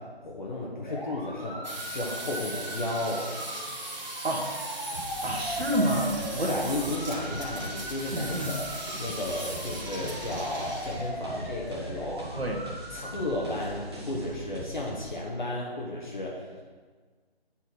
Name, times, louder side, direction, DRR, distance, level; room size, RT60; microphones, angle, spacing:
voice 1, 0.0-3.3 6.4-8.7 9.0-12.3 12.9-16.7, left 1 dB, 50° left, -3 dB, 1.3 m, -33 dB
sound 1, 0.8-13.3, equal, ahead, 2.6 m, -39 dB
sound 2, 1.6-11.1, right 2 dB, 45° right, 1.7 m, -39 dB
sound 3, 4.9-15.0, right 1 dB, 25° right, 1.1 m, -42 dB
voice 2, 5.2-6.5 8.1-8.5 12.4-12.6, right 1 dB, 70° right, 1 dB, 1.5 m, -28 dB
8.5 x 4.4 x 5.8 m, 1.5 s
figure-of-eight pair, 165°, 32 cm